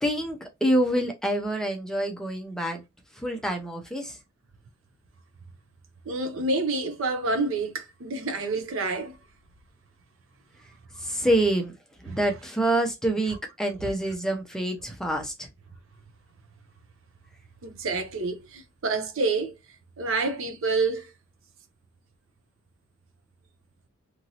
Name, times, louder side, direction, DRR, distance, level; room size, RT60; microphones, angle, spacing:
voice 1, 0.0-2.8 3.2-4.2 11.0-11.7 12.0-15.5, right 1 dB, 5° left, 0.5 m, -26 dB
voice 2, 6.1-9.2 12.1-12.2 17.6-19.6 20.0-21.1, right 3 dB, 70° right, 0.6 m, -28 dB
2.9 x 2.6 x 2.7 m
head